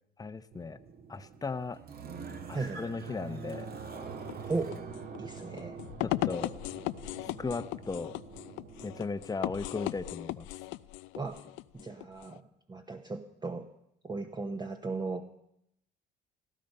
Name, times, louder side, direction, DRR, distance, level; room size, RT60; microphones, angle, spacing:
voice 1, 0.2-0.8 1.1-1.8 2.5-3.8 6.0-6.5 7.4-8.2 8.8-10.5, left 4 dB, 20° left, 12 dB, 0.8 m, -36 dB
sound 1, 0.5-9.1, right 5 dB, 50° right, 1.8 m, -45 dB
voice 2, 2.5-2.9 4.5-4.8 5.2-5.8 11.2-12.4 12.7-13.7 14.0-15.3, right 3 dB, 20° right, 5 dB, 1.0 m, -36 dB
sound 2, 4.2-12.4, left 18 dB, 90° left, 0.5 m, -38 dB
17.0 x 13.5 x 5.4 m, 0.78 s
cardioid pair, 90°, 19 cm